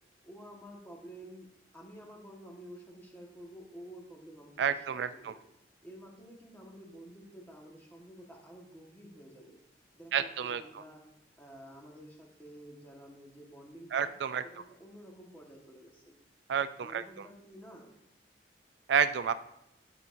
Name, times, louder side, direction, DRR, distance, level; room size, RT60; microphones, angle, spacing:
voice 1, 0.2-5.4 5.8-9.6 9.9-11.0 11.4-14.1 14.4-16.1 16.8-17.9, equal, 10° left, -1 dB, 1.4 m, -51 dB
voice 2, 4.6-5.3 10.1-10.6 13.9-14.4 16.5-17.0 18.9-19.3, right 7 dB, 70° right, 13 dB, 0.3 m, -29 dB
10.5 x 6.8 x 2.6 m, 0.83 s
head